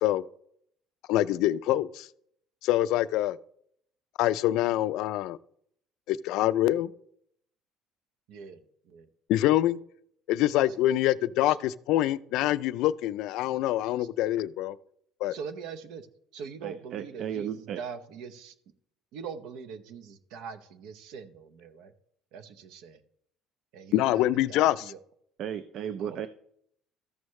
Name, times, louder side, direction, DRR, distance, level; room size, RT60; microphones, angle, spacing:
voice 1, 1.1-2.1 2.6-3.4 4.2-5.4 6.1-6.9 9.3-9.8 10.3-14.8 15.2-15.4 23.9-24.9, left 14 dB, 70° left, 0.3 m, -25 dB
voice 2, 15.3-16.1 16.3-18.5 19.1-21.9 22.3-23.0 23.7-25.0 26.0-26.3, right 6 dB, 70° right, 0.8 m, -42 dB
voice 3, 16.6-17.8 25.4-26.3, right 9 dB, 55° right, 0.4 m, -34 dB
14.0 x 6.3 x 3.2 m
cardioid pair, 125°, 0 cm